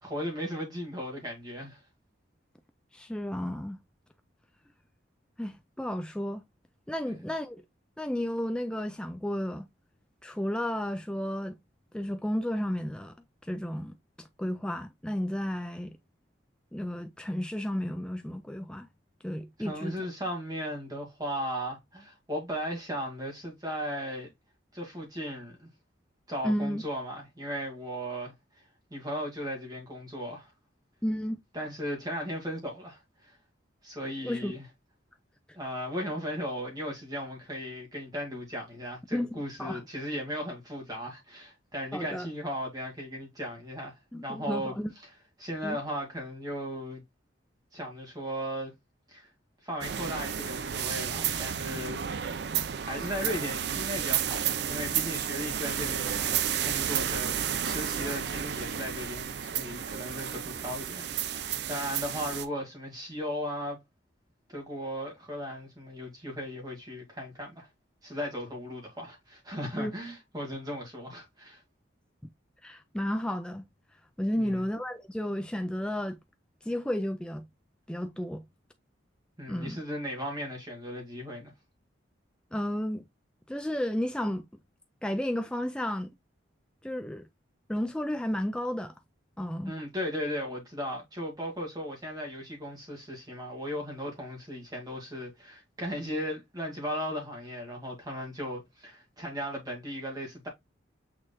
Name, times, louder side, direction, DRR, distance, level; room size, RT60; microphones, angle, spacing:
voice 1, 0.0-1.8 7.0-7.2 19.6-24.3 24.7-25.7 26.3-28.3 28.9-30.5 31.5-33.4 33.8-34.7 35.6-44.7 45.4-47.0 47.7-48.7 49.1-49.3 49.6-52.0 52.4-57.3 57.6-63.8 64.5-67.7 68.0-71.6 74.4-74.6 79.4-81.5 89.6-100.5, equal, 20° right, 2.1 m, -36 dB
voice 2, 2.9-3.8 5.4-6.4 6.9-7.6 8.0-9.7 10.2-11.6 11.9-13.2 13.4-15.9 16.7-18.9 19.2-20.0 26.4-26.8 31.0-31.4 34.2-34.5 39.1-39.8 41.9-42.3 44.1-44.9 45.6-45.8 69.8-69.9 72.6-73.6 74.2-76.2 76.6-77.5 77.9-78.4 79.5-79.8 82.5-83.0 83.5-84.5 85.0-86.1 86.8-87.3 87.7-88.9 89.4-89.7, equal, 5° left, 0.3 m, -32 dB
sound 1, 49.8-62.5, right 9 dB, 55° right, 0.5 m, -32 dB
6.2 x 3.7 x 2.2 m
head